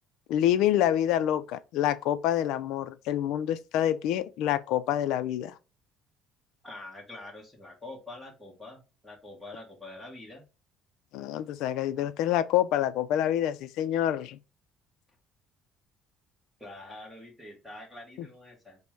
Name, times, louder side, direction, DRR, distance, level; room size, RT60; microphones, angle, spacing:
voice 1, 0.3-5.6 11.1-14.4 18.2-18.3, left 11 dB, 70° left, 0.4 m, -27 dB
voice 2, 6.6-10.5 16.6-18.8, left 2 dB, ahead, 1.0 m, -45 dB
5.2 x 2.1 x 4.6 m
cardioid pair, 165°, 0 cm